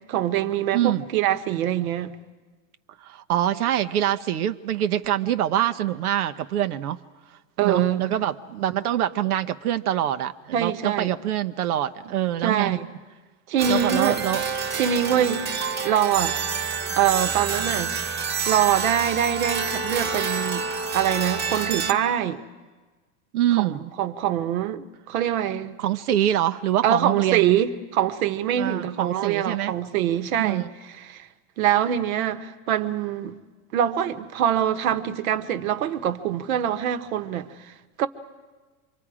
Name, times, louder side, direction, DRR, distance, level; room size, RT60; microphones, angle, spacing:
voice 1, 0.1-2.1 7.6-8.0 10.5-11.1 12.4-12.9 13.5-14.2 14.7-15.5 15.8-16.3 17.0-18.0 18.5-22.4 23.6-25.8 26.8-30.7 30.9-31.3 31.6-33.4 33.7-37.7 38.0-38.1, right 10 dB, 70° right, 1.3 m, -24 dB
voice 2, 0.7-1.0 3.0-7.0 7.6-12.8 13.7-14.4 16.8-16.9 23.3-23.8 25.8-27.5 28.5-29.7 30.4-30.7, right 12 dB, 90° right, 1.0 m, -25 dB
sound 1, 13.6-21.9, right 5 dB, 25° right, 1.5 m, -28 dB
27.0 x 24.5 x 5.0 m
supercardioid pair, 140°, 43 cm